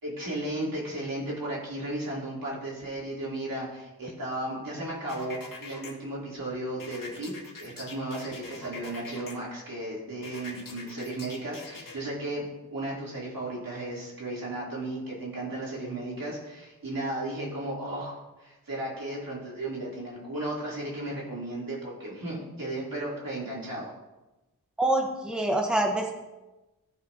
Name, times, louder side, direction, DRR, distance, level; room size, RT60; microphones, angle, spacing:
voice 1, 0.0-7.3 7.6-23.9, right 1 dB, 65° right, -6 dB, 3.6 m, -35 dB
sound 1, 5.1-5.9 6.8-9.3 10.2-12.0, left 3 dB, 60° left, 1.9 m, -43 dB
voice 2, 24.8-26.1, right 1 dB, ahead, 2 dB, 1.3 m, -25 dB
15.0 x 5.9 x 2.9 m, 1.1 s
cardioid pair, 50°, 36 cm